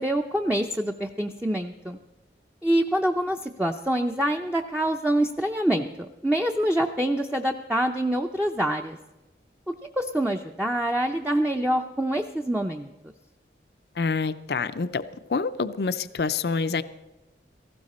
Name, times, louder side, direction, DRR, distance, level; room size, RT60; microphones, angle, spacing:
voice 1, 0.0-2.0 2.6-9.0 9.7-12.9, right 1 dB, 10° right, 3 dB, 0.5 m, -26 dB
voice 2, 14.0-15.0 15.3-16.8, left 4 dB, 65° left, 13 dB, 0.5 m, -27 dB
17.5 x 15.5 x 4.2 m, 1.1 s
head